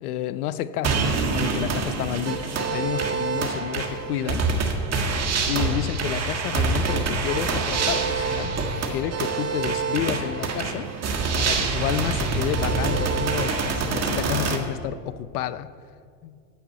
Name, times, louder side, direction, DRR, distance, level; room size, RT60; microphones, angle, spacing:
voice 1, 0.0-4.8 5.5-8.5 8.9-10.9 11.4-15.7 16.2-16.4, left 11 dB, 85° left, 15 dB, 0.6 m, -30 dB
sound 1, 0.8-14.6, right 4 dB, 35° right, 1.7 m, -25 dB
9.1 x 7.1 x 8.2 m, 2.2 s
hypercardioid pair, 90°, 44 cm